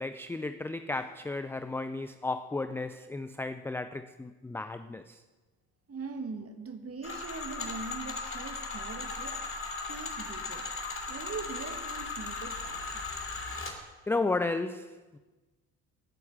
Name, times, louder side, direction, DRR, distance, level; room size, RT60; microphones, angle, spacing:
voice 1, 0.0-5.2 14.1-15.2, left 3 dB, 5° left, 0.4 m, -34 dB
voice 2, 5.9-9.4 9.9-10.6 11.1-13.1, right 4 dB, 30° right, 2.1 m, -41 dB
sound 1, 7.0-13.8, left 3 dB, 25° left, 3.0 m, -37 dB
12.5 x 9.2 x 7.6 m
figure-of-eight pair, 50°, 49 cm